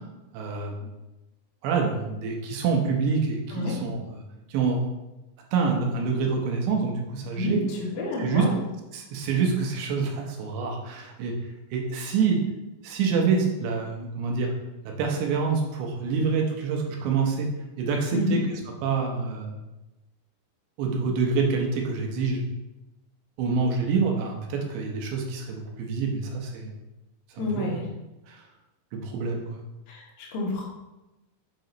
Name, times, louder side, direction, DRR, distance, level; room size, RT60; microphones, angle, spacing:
voice 1, 0.3-0.9 1.6-4.2 4.5-4.8 5.5-7.6 8.2-8.5 8.9-11.4 11.7-12.4 12.8-14.5 14.8-17.5 17.8-18.4 18.8-19.5 20.8-22.4 23.4-26.7 27.3-27.7 28.3-28.4 28.9-29.6, right 5 dB, 80° right, 1 dB, 3.1 m, -26 dB
voice 2, 7.3-8.6 18.1-18.4 27.4-27.8 29.9-30.6, left 2 dB, 60° left, -6 dB, 2.2 m, -29 dB
7.7 x 4.7 x 4.0 m, 1.0 s
omnidirectional pair, 5.2 m